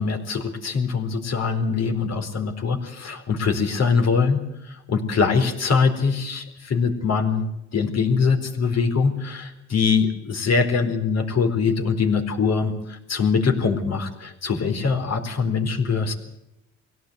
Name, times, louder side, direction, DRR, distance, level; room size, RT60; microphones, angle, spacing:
voice 1, 0.0-4.4 4.7-7.4 7.7-16.1, left 5 dB, 60° left, 6 dB, 4.3 m, -23 dB
23.5 x 17.0 x 8.2 m, 0.85 s
cardioid pair, 90°, 30 cm